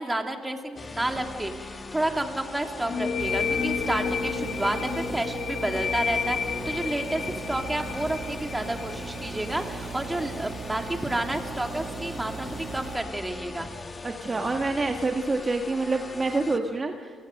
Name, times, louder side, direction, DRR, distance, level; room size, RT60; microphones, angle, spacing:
voice 1, 0.0-13.7, right 1 dB, 10° right, 3 dB, 2.6 m, -30 dB
sound 1, 0.8-16.6, left 3 dB, 30° left, 1.4 m, -40 dB
sound 2, 2.9-10.3, left 6 dB, 65° left, 1.4 m, -31 dB
sound 3, 3.2-13.0, right 7 dB, 60° right, 1.1 m, -39 dB
voice 2, 14.0-17.1, right 3 dB, 30° right, 3 dB, 1.5 m, -27 dB
30.0 x 18.0 x 6.5 m, 2.1 s
cardioid pair, 90°, 0 cm